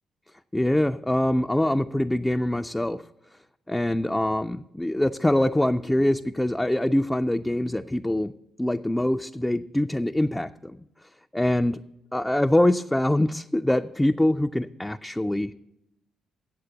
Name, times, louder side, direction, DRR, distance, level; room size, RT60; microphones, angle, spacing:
voice 1, 0.5-3.0 3.7-8.3 8.6-10.8 11.3-11.8 12.1-15.5, left 1 dB, 10° left, 7 dB, 0.4 m, -24 dB
8.0 x 7.8 x 7.9 m, 0.84 s
hypercardioid pair, 45°, 0 cm